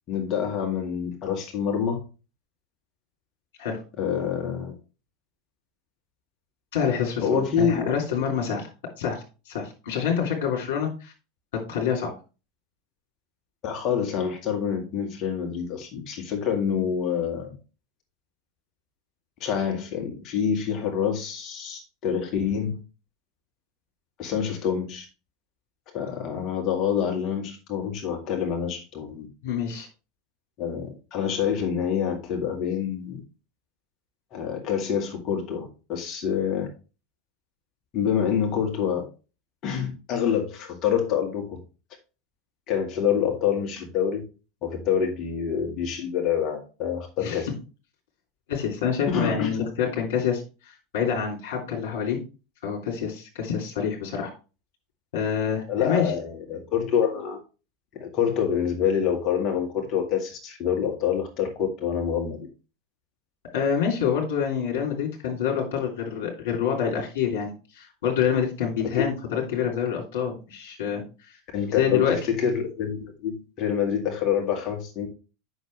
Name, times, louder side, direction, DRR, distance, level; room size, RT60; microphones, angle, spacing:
voice 1, 0.1-2.0 4.0-4.7 7.2-7.9 13.6-17.6 19.4-22.8 24.2-25.1 25.9-29.3 30.6-33.2 34.3-36.7 37.9-39.0 39.6-41.6 42.7-44.2 44.6-47.5 49.1-49.6 55.7-57.4 57.9-62.5 68.9-69.1 71.5-75.1, left 7 dB, 40° left, 2.0 m, -26 dB
voice 2, 6.7-8.7 9.0-11.1 11.5-12.1 29.4-29.9 47.2-47.4 48.5-50.4 50.9-52.2 52.6-54.3 55.1-56.0 63.5-71.0 71.3-71.4 71.7-72.2, left 7 dB, 60° left, 3.1 m, -27 dB
7.9 x 6.3 x 3.3 m
figure-of-eight pair, 80°, 0 cm